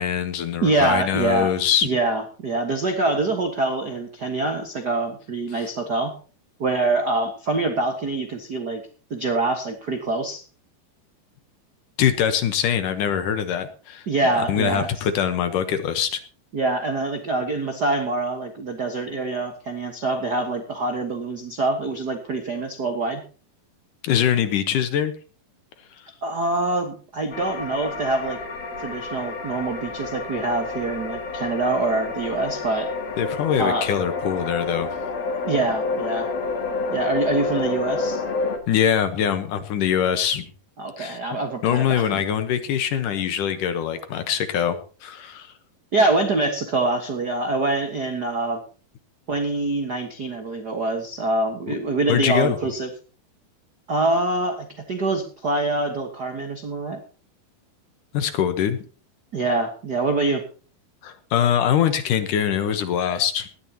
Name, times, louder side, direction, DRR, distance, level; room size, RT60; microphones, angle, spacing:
voice 1, 0.0-1.9 5.6-5.7 12.0-14.1 14.3-16.2 24.0-25.1 33.2-34.9 38.7-40.5 41.0-41.2 41.6-44.8 45.0-45.5 52.1-52.6 58.1-58.8 61.0-63.5, left 9 dB, 70° left, 10 dB, 2.5 m, -23 dB
voice 2, 0.6-1.5 1.8-6.2 6.6-8.8 9.1-10.4 14.1-14.9 16.5-23.2 26.2-28.4 28.8-32.9 33.6-33.9 35.5-36.3 36.9-38.2 40.8-42.1 45.9-48.6 49.3-52.9 53.9-57.0 59.3-60.4, right 2 dB, 65° right, 5 dB, 1.0 m, -25 dB
sound 1, 27.3-38.6, left 3 dB, 50° left, 2.6 m, -29 dB
19.5 x 12.5 x 2.9 m, 0.37 s
omnidirectional pair, 4.4 m